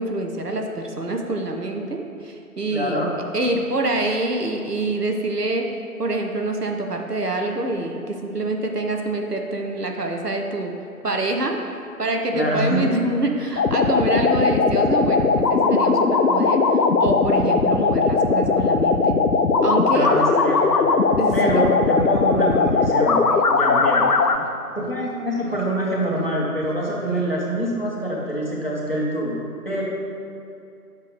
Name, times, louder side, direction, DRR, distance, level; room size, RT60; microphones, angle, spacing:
voice 1, 0.0-3.0 3.3-5.7 6.0-10.7 11.0-16.6 17.0-19.2 19.6-20.1 21.2-21.6, right 2 dB, 80° right, 2 dB, 1.1 m, -26 dB
voice 2, 2.7-3.1 12.3-12.8 19.9-20.9 21.3-24.1 24.7-29.8, right 1 dB, 40° left, -5 dB, 1.2 m, -25 dB
sound 1, 13.6-24.4, left 4 dB, 80° left, 0.6 m, -19 dB
sound 2, 20.8-20.9 21.4-21.6 21.9-22.1 22.5-22.7 23.2-23.5 23.7-24.0 24.3-24.9 25.3-25.6 25.9-26.3 26.6-27.3, right 1 dB, 55° right, 0.7 m, -42 dB
8.4 x 5.9 x 3.4 m, 2.6 s
figure-of-eight pair, 175°, 47 cm